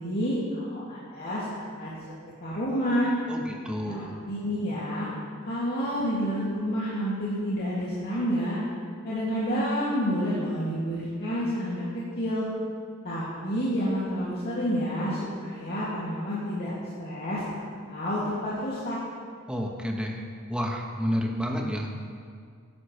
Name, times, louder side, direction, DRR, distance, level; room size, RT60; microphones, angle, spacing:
voice 1, 0.0-1.9 2.4-3.1 4.0-5.1 5.5-8.6 9.0-12.5 13.0-16.7 17.0-19.0, equal, 50° left, -10 dB, 2.5 m, -29 dB
voice 2, 3.3-4.2 19.5-20.2 20.5-21.9, equal, 5° right, 0 dB, 1.2 m, -30 dB
15.5 x 11.0 x 3.3 m, 2.1 s
head